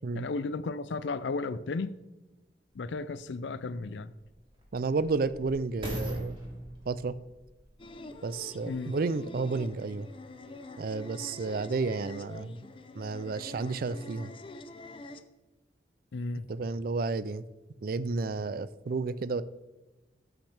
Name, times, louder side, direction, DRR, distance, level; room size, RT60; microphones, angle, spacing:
voice 1, 0.1-1.9 2.7-4.1 8.7-9.0 16.1-16.5, left 3 dB, 85° left, 0.5 m, -34 dB
sound 1, 2.8-2.9 3.6-8.9 9.6-9.7, equal, 30° right, 2.5 m, -41 dB
voice 2, 4.7-6.4 6.9-7.2 8.2-10.1 10.8-12.6 13.0-14.3 16.5-17.4 17.8-19.4, right 4 dB, 55° right, 0.4 m, -31 dB
sound 2, 7.8-15.2, left 2 dB, 30° left, 0.5 m, -46 dB
13.0 x 5.9 x 3.4 m
head